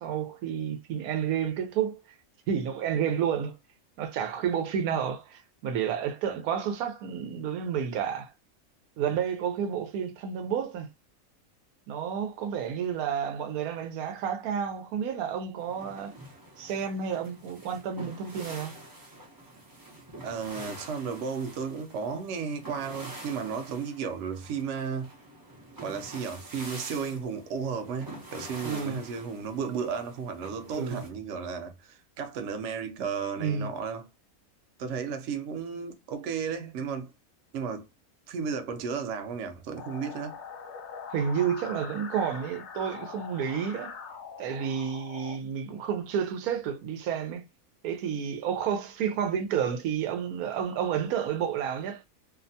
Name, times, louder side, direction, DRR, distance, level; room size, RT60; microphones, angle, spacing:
voice 1, 0.0-2.0 2.5-3.5 4.0-8.3 9.0-10.9 11.9-16.1 16.6-18.7 28.6-29.0 30.7-31.0 33.4-33.7 41.1-44.0 44.4-47.4 47.8-52.0, right 8 dB, 90° right, 1.1 m, -30 dB
sound 1, 15.6-31.1, right 1 dB, 30° right, 0.4 m, -46 dB
voice 2, 20.2-25.1 25.8-34.1 34.8-37.1 37.5-37.9 38.3-40.4, right 6 dB, 65° right, 0.8 m, -34 dB
sound 2, 39.8-45.4, left 6 dB, 60° left, 0.9 m, -43 dB
2.7 x 2.1 x 2.6 m
omnidirectional pair, 1.5 m